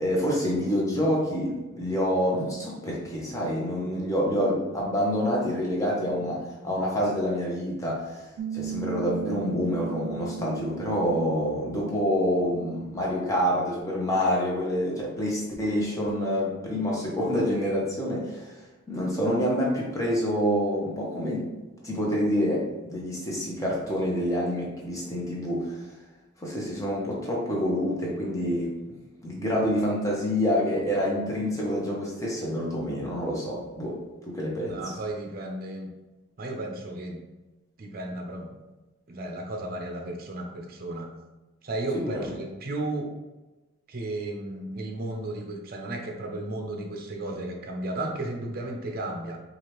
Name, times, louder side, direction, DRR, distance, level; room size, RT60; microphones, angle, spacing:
voice 1, 0.0-8.2 8.5-18.5 18.9-21.5 21.8-25.8 26.4-34.0 34.3-34.8 41.9-42.1, equal, 15° left, -4 dB, 0.9 m, -27 dB
Piano, 8.4-13.5, right 8 dB, 85° right, 0.3 m, -38 dB
voice 2, 34.6-35.9 36.4-37.2 37.8-38.5 39.1-41.1 41.6-43.1 43.9-49.4, right 2 dB, 45° right, 2 dB, 0.6 m, -34 dB
4.9 x 2.5 x 3.0 m, 1.1 s
head